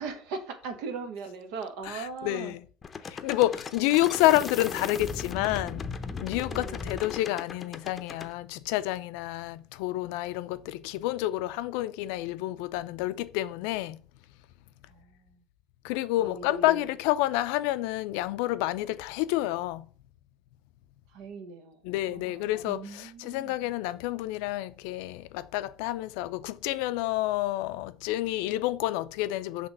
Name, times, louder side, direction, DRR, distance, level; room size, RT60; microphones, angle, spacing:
voice 1, 0.0-2.6 3.3-3.5 6.5-7.1 14.9-15.4 16.2-16.9 21.1-21.8 22.1-23.6, right 4 dB, 80° right, 1.2 m, -40 dB
voice 2, 1.9-2.6 3.0-5.9 6.2-14.0 15.8-19.9 21.8-29.7, left 16 dB, 85° left, 0.4 m, -29 dB
sound 1, 2.8-8.3, left 5 dB, 25° left, 0.6 m, -37 dB
5.9 x 3.4 x 5.3 m
cardioid pair, 130°, 0 cm